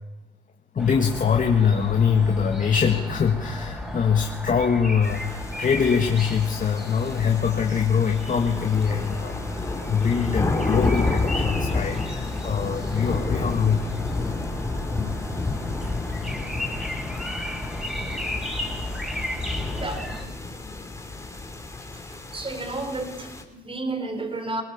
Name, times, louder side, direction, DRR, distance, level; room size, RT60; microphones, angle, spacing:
voice 1, 0.7-13.9, left 6 dB, 40° left, 3 dB, 1.8 m, -23 dB
sound 1, 0.8-20.2, left 1 dB, 5° right, 5.9 m, -34 dB
sound 2, 5.0-23.4, left 3 dB, 15° left, 3.0 m, -30 dB
voice 2, 22.3-24.6, right 2 dB, 25° right, 8 dB, 4.0 m, -31 dB
21.0 x 19.0 x 7.4 m, 1.1 s
cardioid pair, 90°, 20 cm